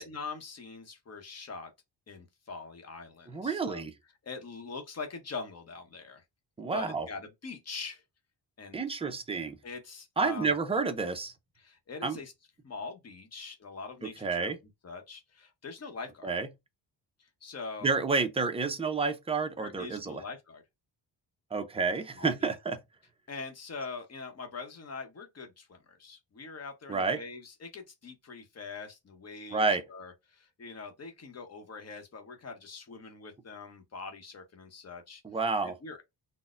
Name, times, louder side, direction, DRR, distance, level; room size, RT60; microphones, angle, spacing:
voice 1, 0.0-1.7 2.1-3.8 4.2-6.2 6.7-8.0 8.6-8.8 9.6-10.5 11.6-12.3 12.6-14.5 14.8-16.3 17.2-18.0 19.6-20.6 22.2-22.5 23.3-35.2 35.6-36.0, left 4 dB, 30° left, 0.8 m, -43 dB
voice 2, 3.3-3.9 6.6-7.1 8.7-9.6 10.2-11.3 12.0-12.2 14.0-14.6 16.2-16.5 17.8-20.2 21.5-22.8 26.9-27.2 29.5-29.8 35.2-35.7, right 4 dB, 15° right, 0.3 m, -30 dB
4.0 x 2.0 x 2.4 m
wide cardioid pair, 160°, 48 cm